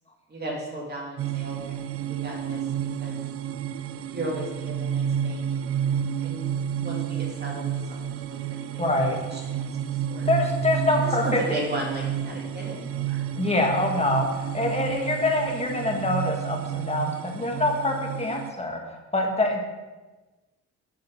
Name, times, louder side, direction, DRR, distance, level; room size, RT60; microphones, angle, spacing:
voice 1, 0.3-2.7 3.0-3.2 4.1-8.4 8.7-8.8 9.3-10.3 11.0-13.2, right 1 dB, 35° right, -3 dB, 2.9 m, -36 dB
sound 1, 1.2-18.5, right 9 dB, 50° right, 0.5 m, -30 dB
voice 2, 8.8-9.4 10.3-11.4 13.4-19.6, left 2 dB, 20° left, 1 dB, 2.0 m, -25 dB
7.6 x 7.6 x 5.7 m, 1.2 s
cardioid pair, 90°, 30 cm